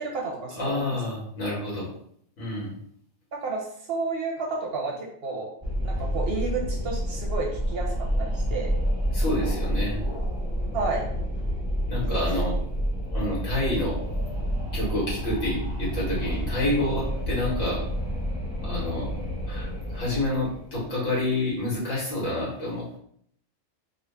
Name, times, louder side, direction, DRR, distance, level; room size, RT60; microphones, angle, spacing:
voice 1, 0.0-1.0 3.3-5.5 5.8-8.7 10.7-11.1 12.1-12.4, right 3 dB, 60° right, -1 dB, 0.7 m, -31 dB
voice 2, 0.6-1.9 2.4-2.7 9.1-10.0 11.9-12.5 13.1-14.2 14.7-17.8 18.6-19.1 19.5-23.0, left 1 dB, 70° left, -6 dB, 2.0 m, -28 dB
Wind, 5.6-21.0, equal, 5° right, 0.8 m, -29 dB
3.8 x 2.4 x 3.3 m, 0.66 s
omnidirectional pair, 1.3 m